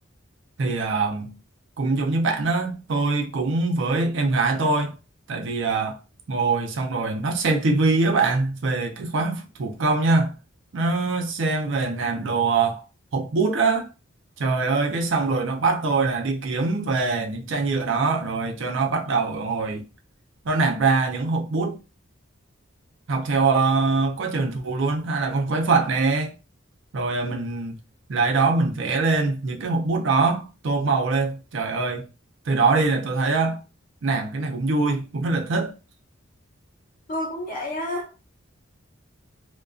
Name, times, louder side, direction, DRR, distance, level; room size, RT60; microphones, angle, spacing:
voice 1, 0.6-1.3 1.8-5.0 5.3-6.0 6.3-10.4 10.7-12.8 13.1-13.9 14.4-19.9 20.4-21.8 23.1-26.3 26.9-27.8 28.1-32.1 32.5-33.6 34.0-35.7, right 3 dB, 65° right, 0.5 m, -23 dB
voice 2, 37.1-38.1, left 1 dB, 45° left, 0.8 m, -29 dB
2.4 x 2.2 x 2.3 m
head